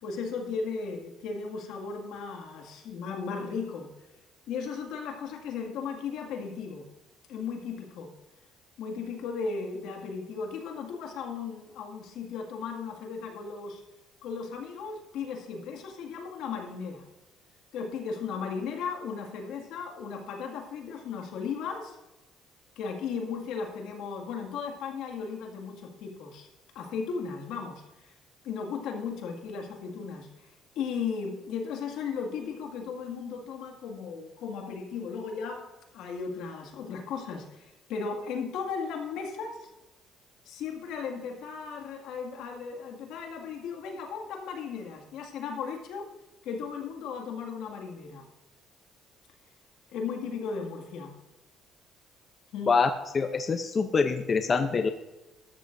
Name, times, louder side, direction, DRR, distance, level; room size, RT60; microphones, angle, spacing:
voice 1, 0.0-3.9 4.5-6.9 7.3-8.1 8.8-13.8 14.2-17.0 17.7-22.0 22.8-26.5 26.7-28.1 28.4-30.3 30.8-35.7 35.9-39.7 40.5-46.1 46.4-48.3 49.9-51.1 52.5-52.7, left 5 dB, 80° left, 2 dB, 2.1 m, -36 dB
voice 2, 52.7-54.9, left 5 dB, 30° left, 8 dB, 0.6 m, -25 dB
13.5 x 12.5 x 2.6 m, 1.0 s
cardioid pair, 120°, 0 cm